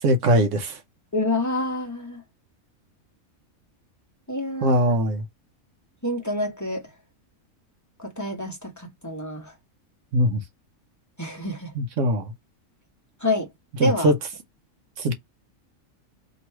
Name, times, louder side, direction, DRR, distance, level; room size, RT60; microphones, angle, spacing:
voice 1, 0.0-0.8 4.6-5.2 10.1-10.4 11.8-12.3 13.8-14.1 15.0-15.1, equal, 70° right, 1.0 m, -21 dB
voice 2, 1.1-2.2 4.3-4.9 6.0-6.9 8.0-9.5 11.2-11.7 13.2-13.5 13.8-14.1, left 1 dB, 15° left, 1.3 m, -27 dB
3.0 x 3.0 x 4.3 m
omnidirectional pair, 1.4 m